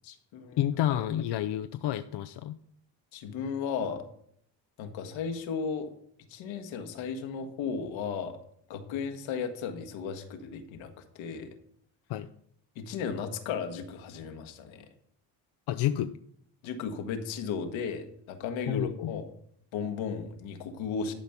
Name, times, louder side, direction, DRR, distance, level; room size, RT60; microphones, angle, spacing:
voice 1, 0.0-0.6 0.9-1.0 3.1-4.0 4.8-5.9 6.3-8.4 8.7-11.5 12.7-14.9 16.6-19.3 19.7-21.1, left 6 dB, 80° left, 5 dB, 1.6 m, -35 dB
voice 2, 0.6-2.6 12.1-12.3 15.7-16.2 18.7-19.1, left 12 dB, 60° left, 10 dB, 0.7 m, -29 dB
12.5 x 5.2 x 5.9 m, 0.67 s
supercardioid pair, 75°, 46 cm